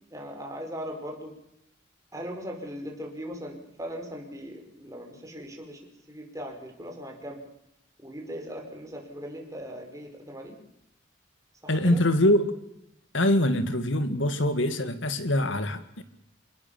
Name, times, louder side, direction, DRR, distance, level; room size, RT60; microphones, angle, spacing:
voice 1, 0.1-1.3 2.1-7.4 8.0-10.6 11.6-12.0, equal, 15° right, 2 dB, 5.3 m, -39 dB
voice 2, 11.7-12.5 13.1-16.0, left 1 dB, 80° left, 11 dB, 2.1 m, -24 dB
28.5 x 19.0 x 7.2 m, 0.84 s
head